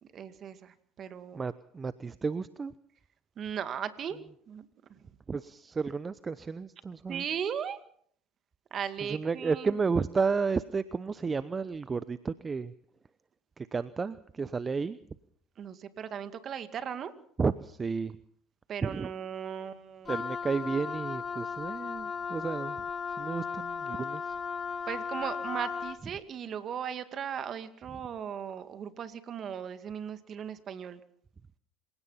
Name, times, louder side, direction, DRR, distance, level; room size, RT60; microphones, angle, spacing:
voice 1, 0.0-1.4 3.4-4.2 4.5-5.0 7.1-7.8 8.7-9.7 15.6-17.1 18.7-20.1 24.9-31.0, right 8 dB, 45° right, 10 dB, 2.1 m, -37 dB
voice 2, 1.3-2.7 5.3-7.2 9.0-12.7 13.6-15.0 17.4-18.2 18.8-19.1 20.1-22.8 23.2-24.3, right 5 dB, 30° right, 15 dB, 0.8 m, -32 dB
Wind instrument woodwind instrument, 20.0-26.0, left 6 dB, 35° left, 1.1 m, -36 dB
27.0 x 17.0 x 5.7 m, 0.63 s
hypercardioid pair, 80°, 0 cm